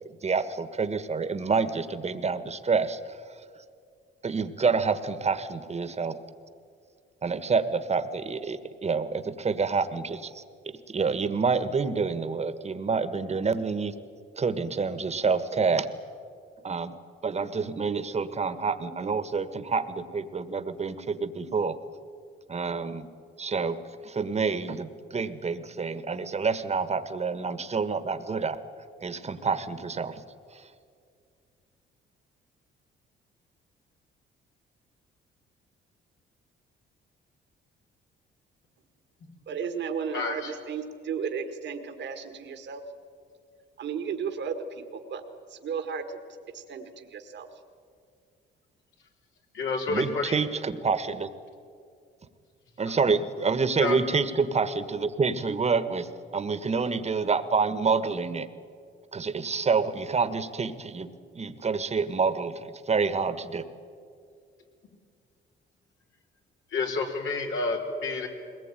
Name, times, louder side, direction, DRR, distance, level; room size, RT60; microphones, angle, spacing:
voice 1, 0.2-3.2 4.2-6.2 7.2-13.9 14.4-15.9 16.6-16.9 17.2-21.8 22.5-23.1 23.4-23.8 24.0-28.6 29.0-30.2 30.5-30.6 49.9-51.3 52.8-56.1 56.3-58.5 59.1-61.1 61.3-63.6, right 5 dB, 35° right, 12 dB, 1.5 m, -28 dB
voice 2, 39.5-42.8 43.8-45.2 45.5-46.2 46.5-47.6, right 6 dB, 65° right, 6 dB, 1.7 m, -34 dB
voice 3, 40.1-40.5 49.5-50.4 52.9-53.0 53.8-54.0 66.7-68.3, left 3 dB, 75° left, 1 dB, 4.0 m, -29 dB
21.5 x 19.0 x 9.1 m, 2.3 s
cardioid pair, 90°, 20 cm